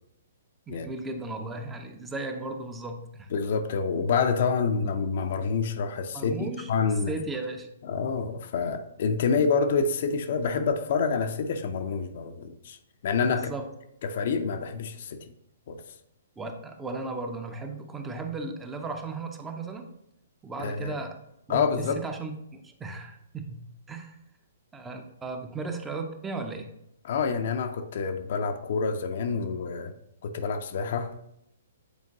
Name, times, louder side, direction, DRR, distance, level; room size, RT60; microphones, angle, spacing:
voice 1, 0.7-3.3 6.1-6.7 7.1-7.7 13.3-13.7 16.4-19.8 20.4-21.2 21.5-23.6 23.9-24.2 24.7-26.7, right 3 dB, 10° right, 5 dB, 0.6 m, -36 dB
voice 2, 3.3-7.1 7.8-12.8 13.0-13.5 14.0-15.2 15.7-15.8 20.6-21.0 21.5-22.0 27.0-29.9 30.2-31.2, left 5 dB, 50° left, 7 dB, 0.6 m, -27 dB
8.2 x 4.4 x 2.8 m, 0.79 s
figure-of-eight pair, 120°, 0 cm